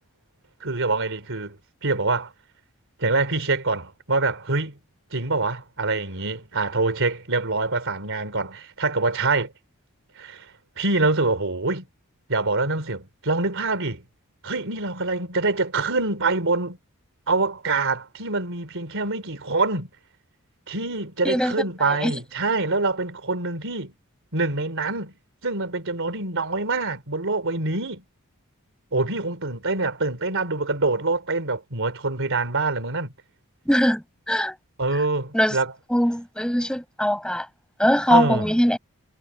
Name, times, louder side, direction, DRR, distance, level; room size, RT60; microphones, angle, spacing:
voice 1, 0.6-1.6 1.8-2.3 3.0-4.7 5.1-9.5 10.2-10.5 10.8-11.9 12.3-14.0 14.4-16.8 17.3-19.9 20.7-23.9 24.3-25.1 25.4-28.0 28.9-33.1 34.8-35.7 38.1-38.5, right 3 dB, 60° right, 3.8 m, -25 dB
voice 2, 21.2-21.5 21.9-22.2 33.7-34.6 34.9-35.0 35.3-35.6 35.9-37.5 37.8-38.8, equal, 5° left, 7.8 m, -21 dB
head